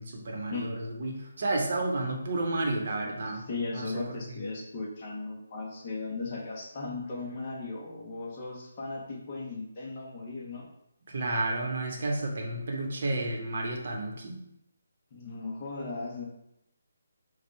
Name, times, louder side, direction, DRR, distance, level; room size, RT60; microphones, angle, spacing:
voice 1, 0.0-3.4 3.7-4.4 11.1-14.4, right 2 dB, 50° right, 0 dB, 0.9 m, -31 dB
voice 2, 3.3-10.7 15.1-16.2, left 3 dB, 25° left, -3 dB, 0.9 m, -37 dB
4.4 x 2.3 x 4.6 m, 0.80 s
hypercardioid pair, 170°, 0 cm